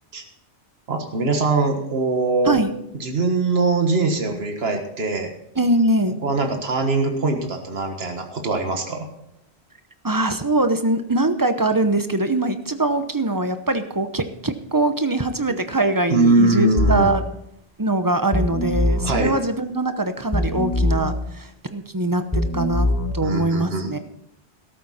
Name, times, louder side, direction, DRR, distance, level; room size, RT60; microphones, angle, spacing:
voice 1, 0.9-2.6 3.0-5.3 6.2-9.1 16.1-17.1 19.0-19.3 23.2-23.9, right 3 dB, 70° right, 4 dB, 1.8 m, -21 dB
voice 2, 5.5-6.2 10.0-17.2 17.8-24.0, right 2 dB, 20° right, 9 dB, 0.8 m, -22 dB
sound 1, 16.8-17.1 18.3-19.1 20.3-21.1 22.3-23.1, left 1 dB, 15° left, 1.5 m, -22 dB
13.5 x 13.0 x 4.2 m, 0.79 s
omnidirectional pair, 1.1 m